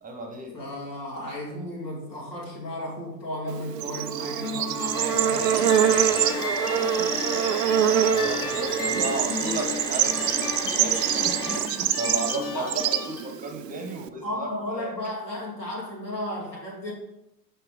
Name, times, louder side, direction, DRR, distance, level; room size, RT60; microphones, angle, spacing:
voice 1, 0.0-0.5 5.4-7.7 8.1-14.9, right 2 dB, 15° right, 4 dB, 0.9 m, -35 dB
voice 2, 0.5-5.5 12.5-12.7 14.2-16.9, left 1 dB, 85° left, -5 dB, 2.4 m, -34 dB
Bird / Insect, 3.5-14.1, right 9 dB, 75° right, 0.5 m, -25 dB
sound 1, 4.4-13.3, left 4 dB, 65° left, 1.9 m, -35 dB
Domestic sounds home sounds, 4.9-11.6, left 1 dB, 10° left, 0.9 m, -35 dB
5.9 x 5.5 x 3.7 m, 0.89 s
figure-of-eight pair, 85°, 49 cm